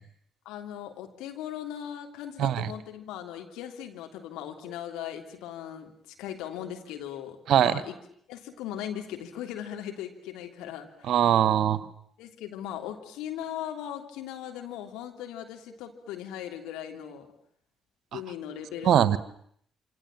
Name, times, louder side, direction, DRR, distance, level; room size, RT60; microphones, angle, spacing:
voice 1, 0.4-5.9 6.2-7.9 8.3-11.1 12.2-17.3 18.1-19.2, left 10 dB, 75° left, 4 dB, 3.2 m, -38 dB
voice 2, 7.5-7.8 11.1-11.9 18.1-18.2 18.8-19.2, right 10 dB, 65° right, 16 dB, 1.4 m, -22 dB
27.5 x 27.0 x 7.6 m, 0.67 s
hypercardioid pair, 45°, 0 cm